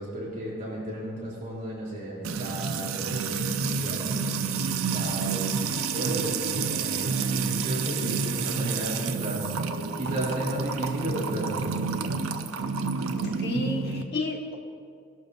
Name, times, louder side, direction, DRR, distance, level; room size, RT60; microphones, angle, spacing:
voice 1, 0.0-5.6 5.9-12.1, right 1 dB, 40° right, -6 dB, 3.2 m, -34 dB
Music / Water tap faucet / Trickle dribble, 2.2-14.0, right 5 dB, 90° right, 0.6 m, -29 dB
voice 2, 13.2-14.6, left 1 dB, 50° left, 0 dB, 1.5 m, -31 dB
18.0 x 12.0 x 2.6 m, 2.2 s
head